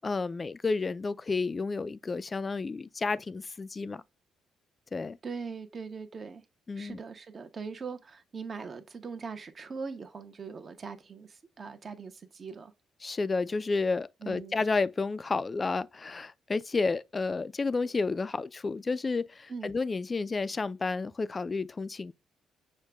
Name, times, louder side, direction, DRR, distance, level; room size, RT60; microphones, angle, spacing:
voice 1, 0.0-4.0 4.9-5.2 6.7-7.0 13.0-22.1, left 4 dB, 30° left, 0.4 m, -31 dB
voice 2, 5.2-6.4 6.8-12.7 14.2-14.6 19.5-19.7, right 5 dB, 40° right, 0.9 m, -41 dB
6.4 x 2.2 x 3.4 m
cardioid pair, 90°, 0 cm